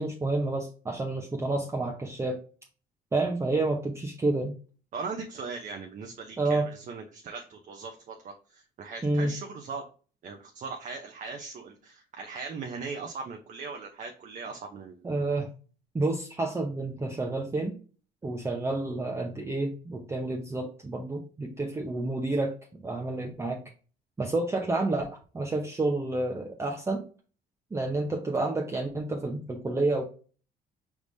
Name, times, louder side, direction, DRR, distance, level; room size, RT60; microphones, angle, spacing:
voice 1, 0.0-2.4 3.1-4.6 6.4-6.7 9.0-9.3 15.0-15.5 15.9-17.8 18.2-22.5 22.8-23.6 24.2-27.0 27.7-30.0, right 2 dB, 15° right, 1 dB, 0.7 m, -29 dB
voice 2, 4.9-9.8 10.2-15.1, right 4 dB, 50° right, 3 dB, 0.7 m, -39 dB
4.8 x 3.6 x 2.6 m, 0.38 s
cardioid pair, 110°, 17 cm